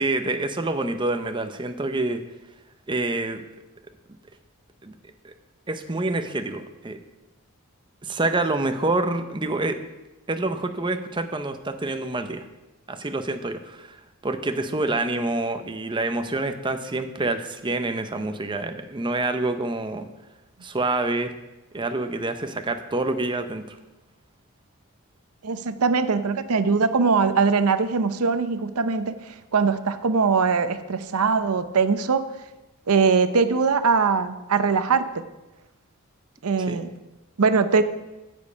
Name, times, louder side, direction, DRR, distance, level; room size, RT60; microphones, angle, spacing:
voice 1, 0.0-2.2 2.9-3.4 4.8-4.9 5.2-5.3 5.7-7.0 8.0-9.8 10.3-12.4 12.9-14.0 14.2-20.1 20.6-21.3 21.7-23.8 36.7-36.8, right 2 dB, 20° right, 8 dB, 0.7 m, -27 dB
voice 2, 25.4-32.3 32.9-35.1 36.4-36.9 37.4-37.8, right 5 dB, 75° right, 11 dB, 0.7 m, -21 dB
15.0 x 5.3 x 5.2 m, 1.1 s
head